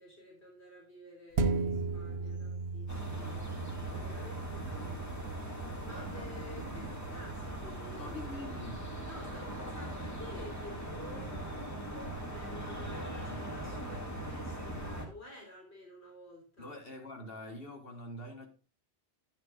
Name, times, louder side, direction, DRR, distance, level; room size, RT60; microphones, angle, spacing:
voice 1, 0.0-3.4 3.9-8.2 9.0-16.8, left 1 dB, 90° left, 3.9 m, -52 dB
sound 1, 1.4-10.2 10.6-10.7, right 3 dB, 75° right, 1.2 m, -38 dB
sound 2, 2.9-15.1, right 1 dB, 15° left, 2.3 m, -40 dB
voice 2, 5.9-7.0 8.0-8.9 12.8-13.5 16.6-18.5, left 1 dB, 65° left, 1.9 m, -46 dB
10.5 x 10.0 x 2.5 m
omnidirectional pair, 1.1 m